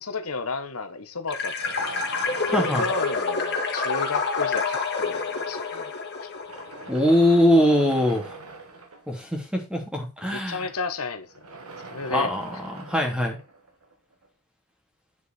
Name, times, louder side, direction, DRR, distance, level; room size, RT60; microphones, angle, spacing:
voice 1, 0.0-1.9 2.5-5.9 6.2-6.3 10.3-11.3 11.9-12.3, left 4 dB, 75° left, 1.4 m, -33 dB
sound 1, 1.3-7.0, left 4 dB, 50° left, 2.2 m, -28 dB
sound 2, 1.6-4.3 5.1-5.2 6.3-9.3 11.2-14.3, right 3 dB, 80° right, 2.6 m, -43 dB
voice 2, 2.5-2.9 6.9-8.4 9.1-10.7 12.1-13.4, left 1 dB, 5° right, 3.0 m, -22 dB
9.4 x 6.8 x 4.5 m
head